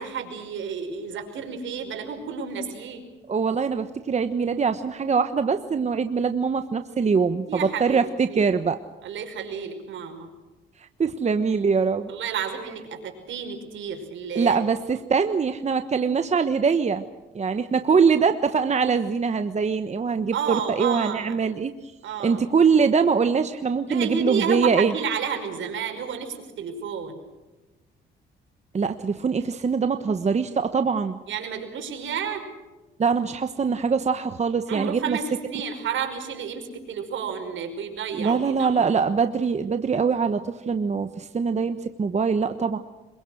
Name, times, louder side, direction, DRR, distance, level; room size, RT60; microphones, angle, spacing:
voice 1, 0.0-3.0 7.5-8.0 8.3-8.4 9.0-10.3 12.1-14.6 20.3-21.4 22.0-22.4 23.9-27.2 31.3-32.4 34.7-38.9, right 6 dB, 75° right, 5 dB, 5.4 m, -31 dB
voice 2, 3.3-8.8 11.0-12.1 14.3-17.1 17.3-21.9 22.2-24.9 28.7-31.2 33.0-35.2 38.1-42.8, right 5 dB, 35° right, 9 dB, 1.2 m, -23 dB
26.5 x 23.0 x 6.4 m, 1.1 s
cardioid pair, 90°, 20 cm